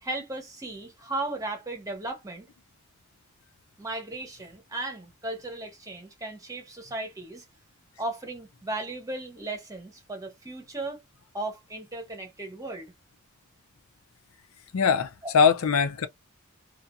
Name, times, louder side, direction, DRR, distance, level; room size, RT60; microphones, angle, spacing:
voice 1, 0.0-2.5 3.8-7.4 8.0-11.0 11.3-12.9 15.2-15.3, right 2 dB, 15° right, 1.0 m, -36 dB
voice 2, 14.7-16.1, left 6 dB, 80° left, 0.5 m, -22 dB
2.7 x 2.4 x 2.2 m
head